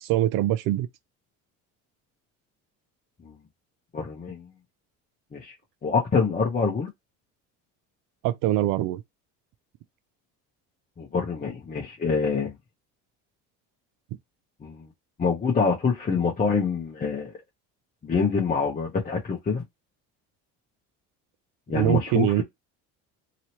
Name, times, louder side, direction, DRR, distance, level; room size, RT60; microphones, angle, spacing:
voice 1, 0.0-0.9 8.2-9.0 21.7-22.4, right 13 dB, 70° right, 0.6 m, -23 dB
voice 2, 3.9-4.5 5.3-5.5 5.8-6.9 11.0-12.5 14.6-14.9 15.2-17.3 18.0-19.6 21.7-22.4, left 5 dB, 25° left, 1.0 m, -25 dB
3.0 x 2.8 x 2.9 m
cardioid pair, 105°, 34 cm